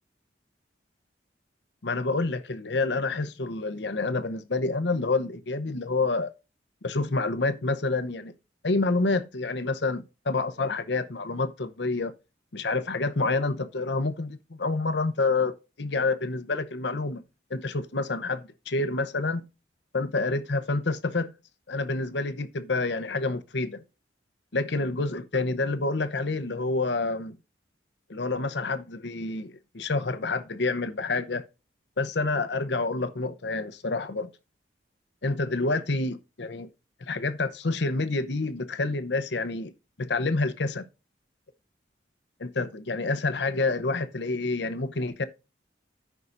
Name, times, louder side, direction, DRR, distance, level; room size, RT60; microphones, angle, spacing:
voice 1, 1.8-6.3 6.8-8.3 8.6-12.1 12.5-15.5 15.8-17.2 17.5-19.4 19.9-21.3 21.7-23.8 24.5-27.4 28.1-31.4 32.0-34.3 35.2-36.7 37.0-39.7 40.0-40.8 42.4-45.2, left 3 dB, 70° left, 0.8 m, -28 dB
14.0 x 5.5 x 2.6 m
head